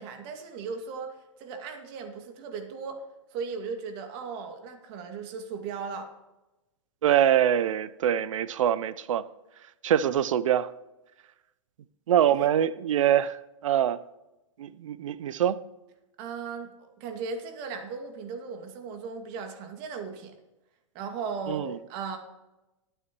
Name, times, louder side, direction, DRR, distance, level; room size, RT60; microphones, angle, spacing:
voice 1, 0.0-3.0 3.3-6.1 12.3-12.5 16.2-20.3 20.9-22.2, right 5 dB, 50° right, 2.3 m, -37 dB
voice 2, 7.0-9.2 9.8-10.7 12.1-14.0 14.6-15.6 21.5-21.8, right 10 dB, 80° right, 0.6 m, -24 dB
20.5 x 9.0 x 3.1 m
hypercardioid pair, 115°, 17 cm